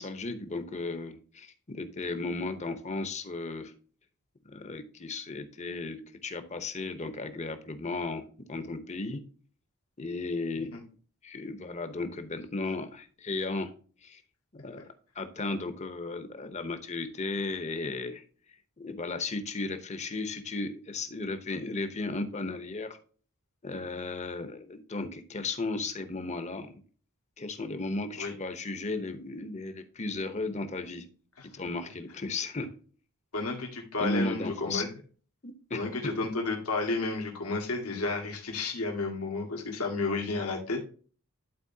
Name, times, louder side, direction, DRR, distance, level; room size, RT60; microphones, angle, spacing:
voice 1, 0.0-3.7 4.5-9.2 10.0-10.8 11.2-13.7 14.0-14.2 14.5-14.9 15.1-18.2 18.8-23.0 23.6-26.8 27.4-31.1 31.5-32.7 34.0-34.8 35.4-35.9, left 3 dB, 30° left, 9 dB, 0.9 m, -35 dB
voice 2, 33.3-34.9 35.7-40.9, left 3 dB, 85° left, 0 dB, 1.9 m, -32 dB
11.5 x 4.3 x 2.7 m, 0.41 s
head